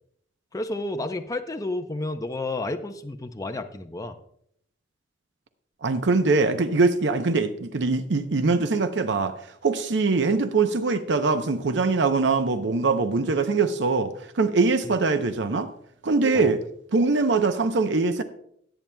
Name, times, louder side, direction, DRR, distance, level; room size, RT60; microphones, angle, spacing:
voice 1, 0.5-4.2 14.8-14.9 16.3-16.5, left 2 dB, 20° left, 6 dB, 0.5 m, -31 dB
voice 2, 5.8-9.3 9.6-15.7 16.0-16.6 16.9-18.2, right 3 dB, 70° right, 9 dB, 0.7 m, -22 dB
17.5 x 8.9 x 2.2 m, 0.69 s
head